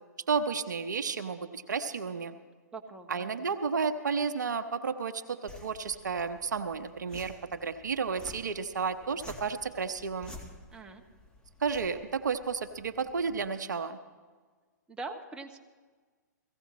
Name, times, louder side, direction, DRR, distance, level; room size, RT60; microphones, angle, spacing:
voice 1, 0.3-2.4 3.1-10.3 11.6-14.0, right 5 dB, 75° right, 8 dB, 0.9 m, -32 dB
voice 2, 2.7-3.3 10.7-11.0 14.9-15.6, right 3 dB, 10° right, 2 dB, 1.2 m, -42 dB
sound 1, 5.5-13.5, left 1 dB, 10° left, 1.9 m, -51 dB
17.0 x 15.5 x 4.2 m, 1.5 s
hypercardioid pair, 125°, 10 cm